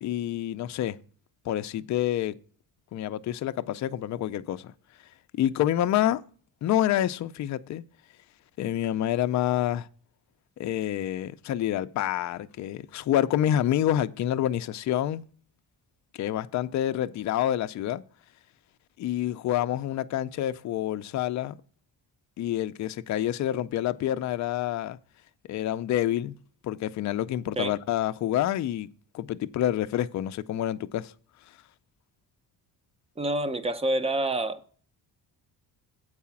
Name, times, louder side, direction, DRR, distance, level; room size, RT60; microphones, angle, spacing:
voice 1, 0.0-1.0 1.5-2.4 2.9-4.7 5.3-6.2 6.6-7.8 8.6-9.9 10.6-15.3 16.1-18.0 19.0-21.6 22.4-25.0 25.5-26.4 26.6-28.9 29.1-31.1, left 12 dB, 45° left, 0.4 m, -27 dB
voice 2, 33.2-34.6, right 1 dB, 15° right, 0.6 m, -27 dB
8.3 x 4.8 x 7.0 m
cardioid pair, 170°, 40 cm